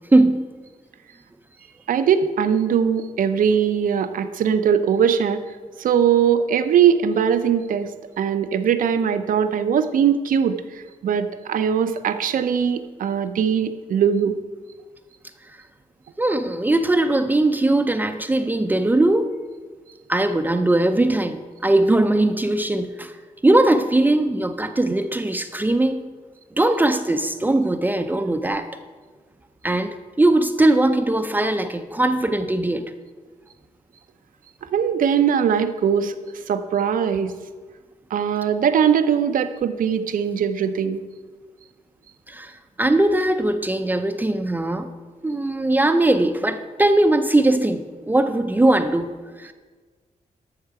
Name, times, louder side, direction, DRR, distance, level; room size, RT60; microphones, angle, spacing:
voice 1, 0.1-0.5 16.2-19.3 20.1-23.1 23.4-26.1 26.6-28.7 29.6-32.9 42.3-42.5 42.8-44.9 45.2-49.1 49.4-49.5, right 2 dB, 15° right, 8 dB, 0.5 m, -20 dB
voice 2, 1.9-5.4 5.8-14.4 34.7-36.1 36.5-37.3 38.1-41.0, right 8 dB, 85° right, 10 dB, 0.7 m, -20 dB
12.5 x 6.6 x 4.8 m, 1.4 s
wide cardioid pair, 140°, 14 cm